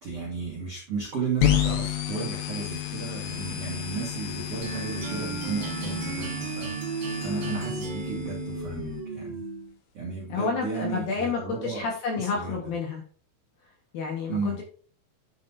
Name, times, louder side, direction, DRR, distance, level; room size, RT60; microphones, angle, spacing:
voice 1, 0.0-9.4 9.9-11.9 12.1-12.7 14.3-14.6, right 5 dB, 85° right, -4 dB, 1.3 m, -34 dB
sound 1, 1.4-9.0, left 10 dB, 80° left, 3.7 m, -31 dB
sound 2, 4.6-9.7, right 5 dB, 50° right, 3.1 m, -34 dB
voice 2, 10.3-13.0 13.9-14.6, left 5 dB, 65° left, -1 dB, 2.6 m, -30 dB
9.7 x 5.9 x 2.7 m, 0.42 s
omnidirectional pair, 5.8 m